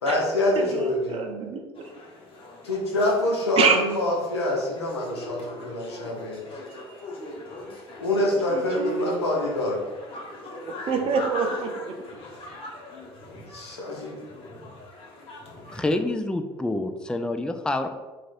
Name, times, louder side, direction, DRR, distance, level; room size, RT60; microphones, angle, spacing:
voice 1, 0.0-1.2 2.6-6.4 8.0-9.8 13.5-14.2, left 1 dB, 90° left, -1 dB, 0.8 m, -25 dB
voice 2, 0.6-1.9 3.6-3.8 8.5-9.2 10.9-11.9, right 5 dB, 45° right, 4 dB, 0.7 m, -26 dB
sound 1, 1.7-16.0, left 2 dB, 40° left, 1.0 m, -41 dB
voice 3, 15.7-17.9, left 2 dB, 5° left, 7 dB, 0.3 m, -27 dB
2.9 x 2.5 x 4.3 m, 1.2 s
hypercardioid pair, 65°, 14 cm